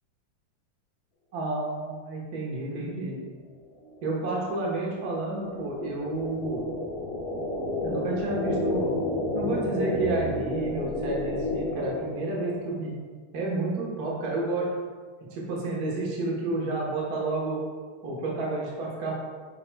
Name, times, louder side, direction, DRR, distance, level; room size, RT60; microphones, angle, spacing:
voice 1, 1.3-3.2 4.0-6.7 7.8-8.9 9.3-12.9 13.3-14.7 15.3-17.6 18.0-19.2, right 2 dB, 75° right, -4 dB, 0.8 m, -30 dB
sound 1, 3.8-12.7, left 2 dB, 55° left, 1.3 m, -31 dB
10.5 x 4.5 x 2.3 m, 1.5 s
omnidirectional pair, 3.7 m